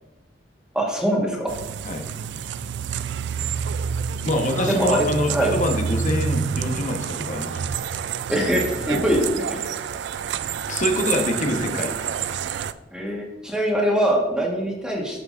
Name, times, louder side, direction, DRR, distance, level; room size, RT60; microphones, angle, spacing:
voice 1, 0.7-1.5 4.7-5.5 8.3-9.4 12.9-15.2, equal, 5° right, -2 dB, 1.4 m, -23 dB
sound 1, 1.5-12.7, right 7 dB, 70° right, 0.3 m, -28 dB
voice 2, 4.2-7.6 10.7-12.1, left 1 dB, 45° left, 4 dB, 1.1 m, -25 dB
13.0 x 5.9 x 2.5 m, 1.1 s
head